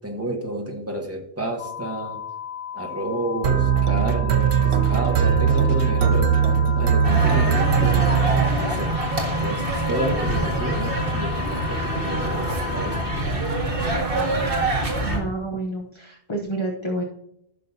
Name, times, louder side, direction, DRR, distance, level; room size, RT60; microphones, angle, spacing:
voice 1, 0.0-2.2 2.7-6.4 6.7-9.0 9.4-13.3, right 1 dB, 15° right, 1 dB, 1.4 m, -30 dB
sound 1, 1.6-13.2, left 9 dB, 60° left, 0.7 m, -35 dB
sound 2, 3.4-9.1, right 7 dB, 70° right, 0.9 m, -20 dB
sound 3, 7.0-15.2, right 1 dB, 55° right, 2.0 m, -25 dB
voice 2, 15.0-17.0, right 2 dB, 30° left, 0 dB, 0.9 m, -29 dB
14.0 x 6.2 x 2.8 m, 0.75 s
omnidirectional pair, 1.2 m